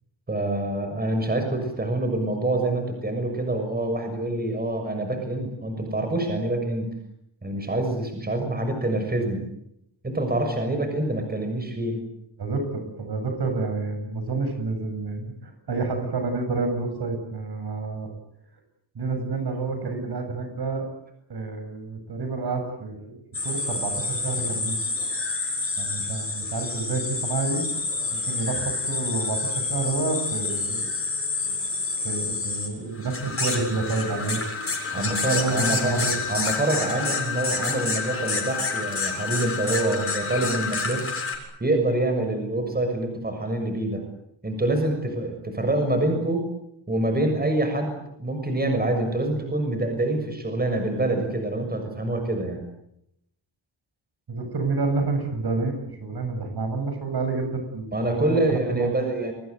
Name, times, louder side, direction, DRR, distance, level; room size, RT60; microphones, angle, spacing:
voice 1, 0.3-6.9 7.4-9.5 10.0-12.0 34.9-36.0 36.3-41.0 41.6-44.0 44.4-46.5 46.9-52.6 57.9-59.3, right 2 dB, 20° right, 5 dB, 6.6 m, -26 dB
voice 2, 12.4-18.1 18.9-20.9 21.3-24.8 25.8-27.6 28.2-30.9 32.0-34.4 35.0-36.4 54.3-55.7 56.0-58.9, right 3 dB, 50° right, 6 dB, 7.8 m, -29 dB
sound 1, 23.3-41.4, left 4 dB, 25° left, 7.5 m, -28 dB
29.5 x 22.0 x 8.1 m, 0.78 s
wide cardioid pair, 125°, 48 cm